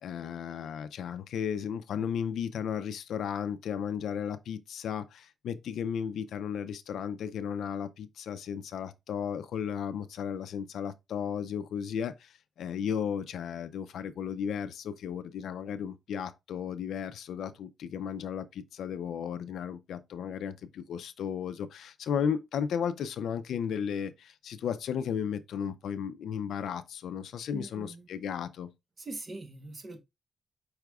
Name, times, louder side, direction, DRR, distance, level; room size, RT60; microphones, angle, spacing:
voice 1, 0.0-28.7, left 8 dB, 80° left, 0.4 m, -34 dB
voice 2, 27.5-28.1 29.0-30.0, right 2 dB, 35° right, 0.9 m, -42 dB
4.8 x 4.7 x 2.3 m
cardioid pair, 130°, 0 cm